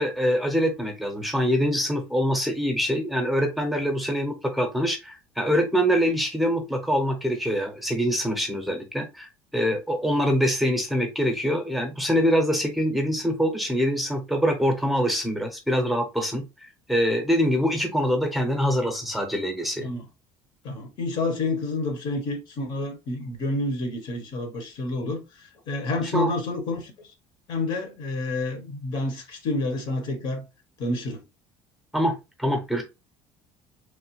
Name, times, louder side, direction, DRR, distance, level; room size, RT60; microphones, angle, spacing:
voice 1, 0.0-19.9 26.0-26.3 31.9-32.8, equal, ahead, 0.7 m, -24 dB
voice 2, 20.6-26.9 27.5-30.4 30.8-31.2, left 2 dB, 60° left, 1.0 m, -29 dB
3.1 x 2.1 x 3.0 m
cardioid pair, 120°, 9 cm